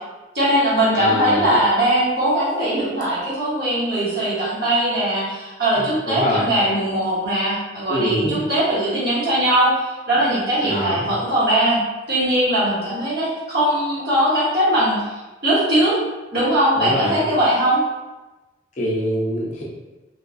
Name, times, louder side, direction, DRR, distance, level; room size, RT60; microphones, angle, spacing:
voice 1, 0.3-11.8 12.1-15.1 15.4-16.0 16.3-17.8, right 1 dB, 65° right, -9 dB, 1.2 m, -20 dB
voice 2, 0.9-1.5 5.8-6.5 7.9-8.4 10.6-11.1 16.7-17.2 18.8-19.6, equal, 45° left, -4 dB, 0.7 m, -24 dB
3.5 x 2.3 x 2.6 m, 1.1 s
head